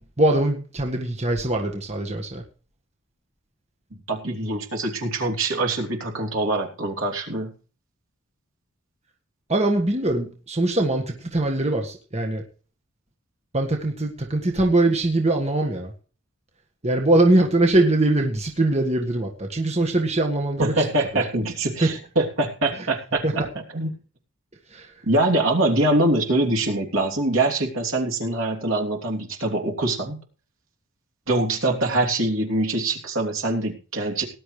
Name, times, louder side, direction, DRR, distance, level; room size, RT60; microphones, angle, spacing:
voice 1, 0.2-2.4 9.5-12.4 13.5-15.9 16.8-20.7 21.8-21.9 23.2-23.3 24.7-24.9, right 2 dB, 30° right, 2 dB, 1.7 m, -22 dB
voice 2, 4.1-7.5 20.6-23.9 25.1-30.2 31.3-34.2, right 2 dB, 70° right, 1 dB, 3.2 m, -24 dB
18.5 x 11.5 x 3.3 m, 0.38 s
head